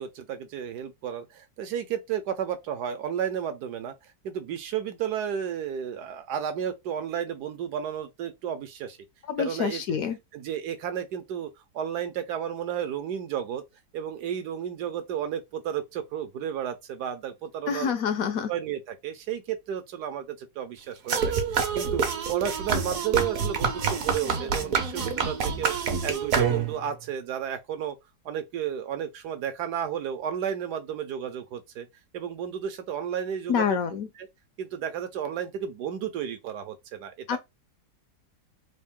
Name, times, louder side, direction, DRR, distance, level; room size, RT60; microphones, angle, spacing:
voice 1, 0.0-3.9 4.2-9.0 9.4-10.0 10.3-13.6 13.9-17.9 18.5-21.2 21.5-22.0 22.3-27.9 28.2-31.9 32.1-33.8 34.2-34.3 34.6-37.4, right 9 dB, 75° right, 1.4 m, -32 dB
voice 2, 9.3-10.2 17.7-18.5 33.5-34.1 37.3-37.4, left 7 dB, 70° left, 0.9 m, -27 dB
sound 1, 21.1-26.9, right 6 dB, 60° right, 1.2 m, -27 dB
3.6 x 2.6 x 3.6 m
omnidirectional pair, 1.8 m